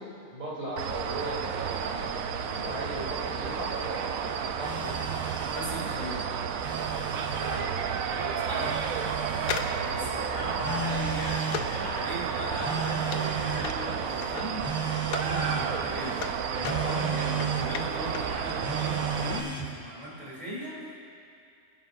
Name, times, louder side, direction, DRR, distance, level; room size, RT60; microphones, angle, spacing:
voice 1, 0.0-2.0 2.3-5.0 7.4-7.7 8.1-8.7 10.0-10.5 16.7-17.1, right 1 dB, 35° right, -8 dB, 3.4 m, -37 dB
sound 1, 0.8-19.4, right 7 dB, 70° right, 1.0 m, -32 dB
Telephone, 4.6-5.7 6.4-7.6 8.6-9.6 10.6-11.7 12.6-13.7 14.6-15.7 16.6-17.7 18.6-19.7, right 6 dB, 5° right, 0.9 m, -34 dB
voice 2, 5.5-6.3 8.4-8.7 9.8-14.7 15.1-21.0, right 1 dB, 25° left, -8 dB, 3.0 m, -37 dB
sound 2, 9.4-15.4 15.7-18.4 18.6-18.7, left 7 dB, 70° left, 1.1 m, -39 dB
24.0 x 11.0 x 2.6 m, 2.5 s
omnidirectional pair, 1.6 m